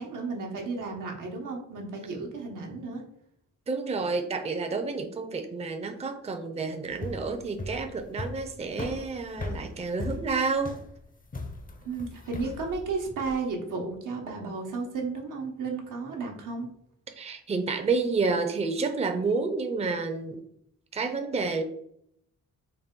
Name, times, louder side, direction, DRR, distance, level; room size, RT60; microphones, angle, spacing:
voice 1, 0.0-3.0 11.8-16.7, right 4 dB, 85° right, 1 dB, 0.9 m, -33 dB
voice 2, 3.7-10.8 17.2-20.4 20.9-21.6, right 4 dB, 20° right, 6 dB, 0.5 m, -29 dB
sound 1, 6.9-13.4, left 2 dB, 30° left, 0.5 m, -38 dB
4.0 x 2.2 x 3.6 m, 0.69 s
cardioid pair, 80°, 31 cm